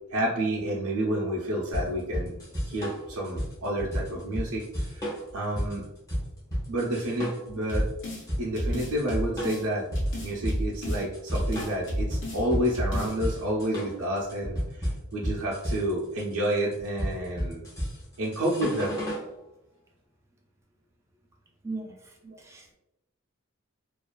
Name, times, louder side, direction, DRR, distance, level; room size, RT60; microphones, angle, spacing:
voice 1, 0.1-2.3 2.7-4.6 4.9-5.8 6.7-7.9 8.4-9.9 10.2-14.6 15.1-17.6 18.2-18.9 22.2-22.4, right 1 dB, 90° right, -4 dB, 0.5 m, -29 dB
sound 1, 1.7-19.3, equal, 15° left, 0.7 m, -32 dB
sound 2, 7.7-8.2 8.6-9.6 10.0-11.0 11.4-12.4 12.7-13.1, equal, 55° left, 0.7 m, -30 dB
voice 2, 21.6-21.9 22.4-22.7, right 3 dB, 15° right, 1 dB, 0.3 m, -36 dB
2.4 x 2.3 x 2.2 m, 0.90 s
head